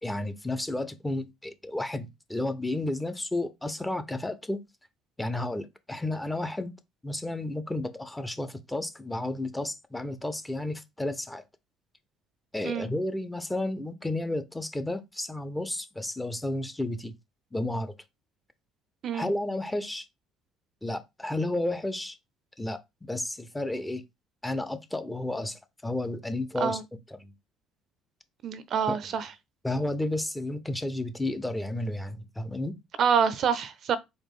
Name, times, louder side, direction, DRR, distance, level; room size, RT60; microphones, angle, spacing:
voice 1, 0.0-4.6 5.2-6.7 7.0-11.4 12.5-17.1 17.5-17.9 19.1-20.0 20.8-22.2 22.6-22.8 23.1-24.0 24.4-26.8 27.1-27.3 28.9-29.0 29.6-32.8, left 1 dB, 10° left, 0.6 m, -32 dB
voice 2, 28.4-29.3 33.0-34.0, right 7 dB, 55° right, 0.5 m, -26 dB
4.2 x 2.4 x 3.5 m
hypercardioid pair, 65°, 0 cm